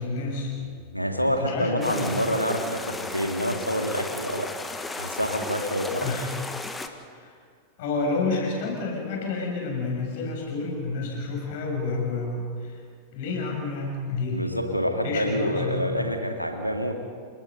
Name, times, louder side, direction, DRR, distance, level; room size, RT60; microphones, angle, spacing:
voice 1, 0.0-0.5 1.4-2.1 5.9-6.3 7.1-7.3 7.8-12.8 13.1-14.4 15.0-15.9, left 3 dB, 50° left, -1 dB, 7.1 m, -29 dB
voice 2, 0.6-4.5 4.9-6.1 14.3-16.9, equal, 90° left, 4 dB, 2.4 m, -27 dB
sound 1, 1.8-6.9, left 2 dB, 10° left, 1.6 m, -35 dB
29.5 x 19.5 x 5.5 m, 2.2 s
figure-of-eight pair, 90°, 0 cm